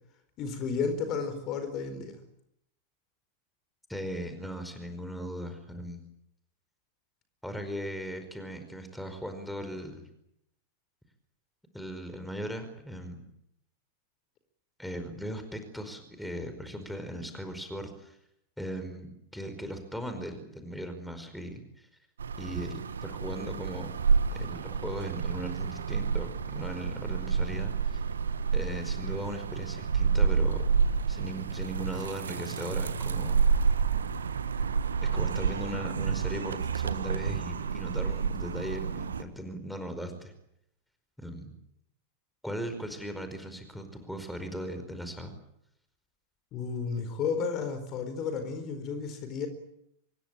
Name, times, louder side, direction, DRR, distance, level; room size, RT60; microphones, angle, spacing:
voice 1, 0.4-2.2 46.5-49.5, left 5 dB, 35° left, 9 dB, 4.5 m, -32 dB
voice 2, 3.9-6.0 7.4-10.0 11.7-13.3 14.8-18.2 18.6-21.9 22.4-23.9 24.3-28.0 28.5-30.7 31.1-33.4 35.0-40.3 41.2-41.5 42.4-45.3, equal, ahead, 8 dB, 4.9 m, -38 dB
sound 1, 22.2-39.2, right 5 dB, 70° right, 1.5 m, -29 dB
25.5 x 21.5 x 9.0 m, 0.78 s
figure-of-eight pair, 90°, 0 cm